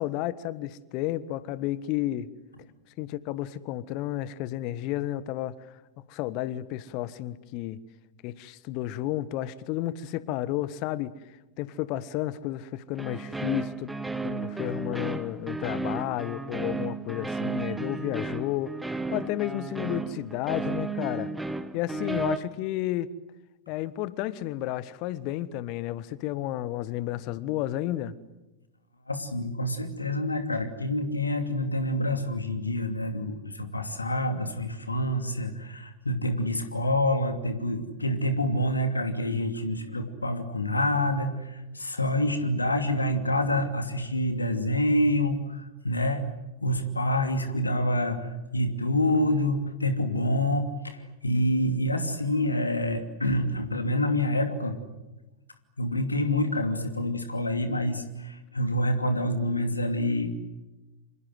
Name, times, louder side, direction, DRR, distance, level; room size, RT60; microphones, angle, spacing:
voice 1, 0.0-2.3 3.0-5.5 6.1-7.8 8.2-11.1 11.6-13.9 14.2-18.7 19.1-21.3 21.7-23.1 23.7-28.1, left 14 dB, 45° left, 18 dB, 1.3 m, -32 dB
sound 1, 13.0-22.4, right 3 dB, 5° right, 1.6 m, -33 dB
voice 2, 29.1-46.2 46.6-54.8 55.8-60.5, left 1 dB, 80° left, 8 dB, 2.7 m, -27 dB
28.5 x 26.5 x 7.9 m, 1.1 s
figure-of-eight pair, 90°, 0 cm